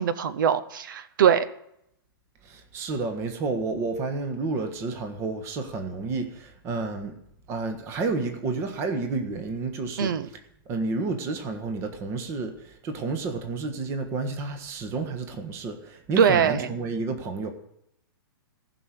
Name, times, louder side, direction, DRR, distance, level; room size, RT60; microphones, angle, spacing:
voice 1, 0.0-1.4 10.0-10.3 16.2-16.7, right 8 dB, 60° right, 14 dB, 0.9 m, -22 dB
voice 2, 2.4-7.1 7.5-10.4 10.7-17.5, right 3 dB, 20° right, 6 dB, 1.4 m, -30 dB
15.5 x 6.2 x 8.2 m, 0.77 s
hypercardioid pair, 160°, 12 cm